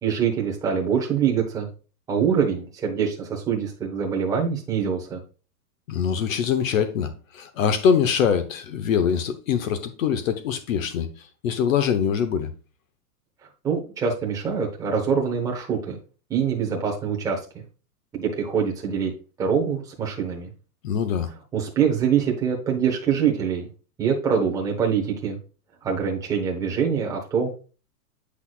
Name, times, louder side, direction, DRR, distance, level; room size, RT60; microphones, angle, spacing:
voice 1, 0.0-1.7 2.1-5.2 13.6-16.0 16.3-17.4 18.1-19.1 19.4-20.5 21.5-23.7 24.0-25.4 25.8-27.6, right 7 dB, 5° right, 0.9 m, -24 dB
voice 2, 5.9-12.5 20.8-21.3, left 7 dB, 55° left, 1.0 m, -23 dB
8.1 x 6.0 x 2.3 m
supercardioid pair, 170°, 48 cm